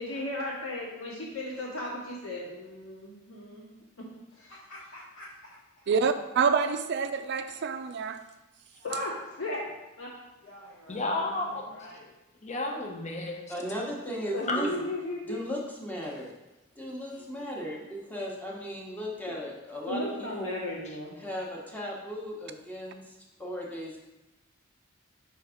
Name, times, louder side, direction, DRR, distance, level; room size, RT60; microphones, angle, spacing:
voice 1, 0.0-3.7 4.4-4.5 8.8-9.1 9.4-9.6 10.0-10.1 11.0-11.3 14.3-15.4 19.8-21.1, left 1 dB, 85° left, -5 dB, 2.0 m, -35 dB
voice 2, 4.3-6.0 8.7-9.1 9.6-9.7 10.4-12.1, left 1 dB, 65° left, -9 dB, 1.4 m, -50 dB
voice 3, 5.9-8.2, right 5 dB, 55° right, 10 dB, 0.4 m, -27 dB
voice 4, 10.9-11.7 12.4-13.4 14.4-14.7, left 2 dB, 35° left, 2 dB, 0.8 m, -31 dB
voice 5, 13.5-14.7 15.2-16.3 16.8-20.5 21.2-24.0, equal, 10° left, -3 dB, 1.0 m, -37 dB
5.5 x 3.4 x 5.0 m, 1.0 s
head